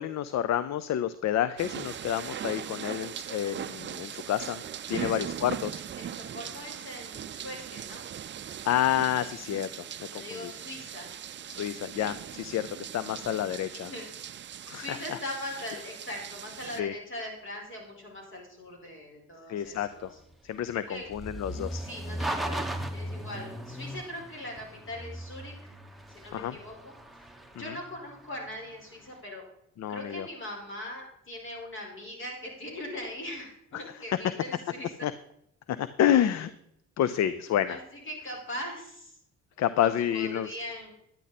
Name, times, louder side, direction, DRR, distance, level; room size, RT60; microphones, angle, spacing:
voice 1, 0.0-4.6 4.9-5.8 8.6-10.5 11.5-13.9 14.7-15.2 16.8-16.9 19.5-20.1 20.4-21.8 26.3-26.6 27.7-27.8 29.8-30.3 35.0-35.1 35.7-36.5 37.0-37.8 39.6-40.6, left 10 dB, 60° left, 14 dB, 0.6 m, -29 dB
sound 1, 1.6-16.8, right 9 dB, 40° right, 0.5 m, -40 dB
voice 2, 6.0-8.0 10.1-11.1 13.9-14.1 14.7-20.2 20.7-21.1 21.8-22.7 22.9-25.6 26.1-26.9 27.6-29.4 29.9-35.1 37.7-39.2 39.7-40.9, left 1 dB, 40° left, -1 dB, 4.7 m, -41 dB
sound 2, 19.7-28.9, right 1 dB, ahead, 1.1 m, -38 dB
10.5 x 10.0 x 4.1 m, 0.76 s
cardioid pair, 90°, 30 cm